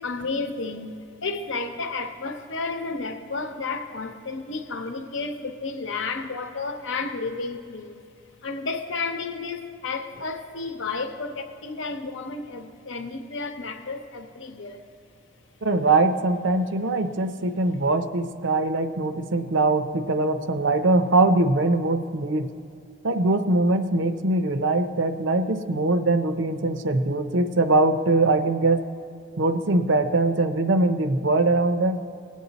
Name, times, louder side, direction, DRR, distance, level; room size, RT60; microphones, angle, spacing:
voice 1, 0.0-8.1 8.4-14.9, left 3 dB, 70° left, 0.8 m, -32 dB
voice 2, 15.6-22.5 23.0-28.8 29.4-32.0, right 2 dB, 65° right, 0.6 m, -22 dB
19.5 x 8.3 x 4.0 m
head